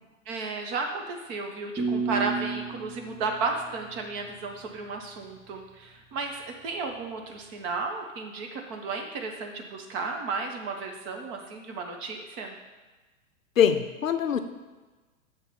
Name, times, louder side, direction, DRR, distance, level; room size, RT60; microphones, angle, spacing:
voice 1, 0.3-12.6, right 4 dB, 35° right, 3 dB, 1.1 m, -33 dB
sound 1, 1.8-4.7, right 4 dB, 15° right, 0.5 m, -33 dB
voice 2, 13.6-14.4, left 8 dB, 85° left, 9 dB, 0.6 m, -23 dB
7.0 x 3.3 x 5.9 m, 1.3 s
hypercardioid pair, 105°, 39 cm